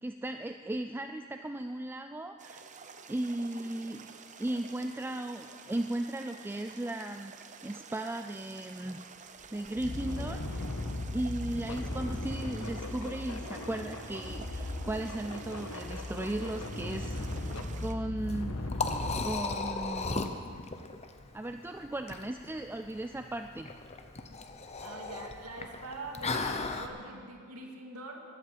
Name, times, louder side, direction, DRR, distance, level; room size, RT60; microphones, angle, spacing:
voice 1, 0.0-2.6 3.1-7.3 7.6-9.0 9.5-10.6 11.1-18.6 19.2-20.3 21.3-23.7, right 1 dB, 10° right, 7 dB, 0.3 m, -36 dB
sound 1, 2.4-17.9, right 5 dB, 35° right, 0.8 m, -50 dB
sound 2, 9.4-19.3, left 2 dB, 70° left, 1.3 m, -37 dB
Liquid, 18.2-26.9, left 3 dB, 30° left, 0.8 m, -36 dB
voice 2, 24.8-28.2, right 2 dB, 90° right, 1 dB, 2.3 m, -44 dB
12.5 x 11.5 x 8.5 m, 2.1 s
head